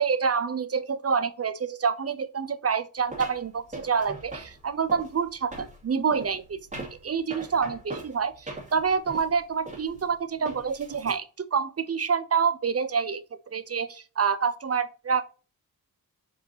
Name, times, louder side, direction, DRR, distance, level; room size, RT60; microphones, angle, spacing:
voice 1, 0.0-6.6 7.0-13.2 13.5-15.3, right 6 dB, 40° right, 0.6 m, -27 dB
sound 1, 3.1-11.1, right 2 dB, 20° right, 2.5 m, -41 dB
7.2 x 4.9 x 2.8 m
wide cardioid pair, 110°, 37 cm